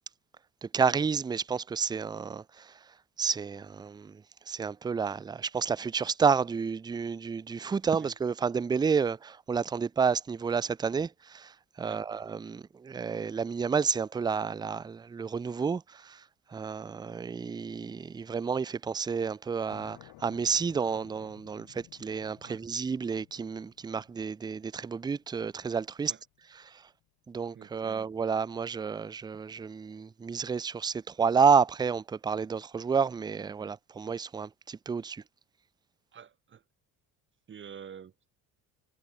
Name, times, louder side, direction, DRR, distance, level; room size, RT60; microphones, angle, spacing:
voice 1, 0.6-16.2 16.5-26.1 26.5-26.9 27.3-35.2, right 6 dB, 10° right, 0.4 m, -30 dB
sound 1, 19.7-27.1, left 20 dB, 75° left, 1.4 m, -57 dB
voice 2, 27.5-28.1 36.1-36.6 37.5-38.3, right 8 dB, 35° right, 1.6 m, -48 dB
cardioid pair, 135°, 35 cm